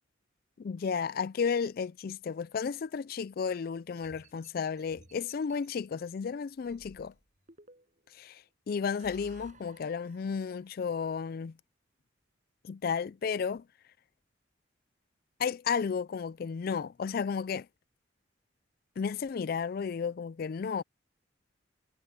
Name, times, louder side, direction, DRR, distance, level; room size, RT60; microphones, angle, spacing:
voice 1, 0.6-7.1 8.1-11.5 12.6-13.6 15.4-17.7 19.0-20.8, left 6 dB, 50° left, 0.3 m, -33 dB
sound 1, 4.0-5.7 6.6-8.1 8.7-10.9, right 2 dB, 40° right, 6.0 m, -57 dB
head